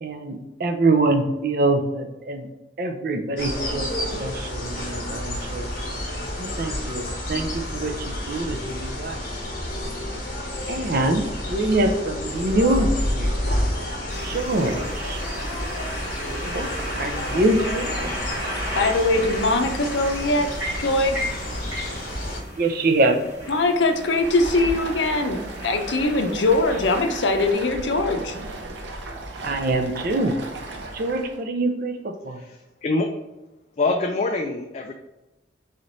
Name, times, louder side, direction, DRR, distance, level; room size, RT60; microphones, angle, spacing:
voice 1, 0.0-2.5 2.8-3.9 4.2-5.7 6.4-9.2 10.7-11.2 11.5-13.3 14.2-15.2 16.4-16.7 16.9-17.9 22.6-23.2 29.4-30.3 30.9-32.4, right 2 dB, 50° right, 6 dB, 0.5 m, -24 dB
sound 1, 3.4-22.4, left 1 dB, 55° left, 1.3 m, -30 dB
sound 2, 14.1-27.5, equal, 15° right, 1.4 m, -35 dB
voice 2, 18.8-20.5 20.8-21.2 23.5-25.4 25.6-28.4, left 2 dB, 75° left, 5 dB, 0.6 m, -21 dB
Stream, 23.9-31.4, right 2 dB, 75° right, 0.8 m, -35 dB
voice 3, 32.3-33.1 33.7-34.9, left 3 dB, 35° left, 3 dB, 0.3 m, -25 dB
4.0 x 3.2 x 3.9 m, 1.0 s
head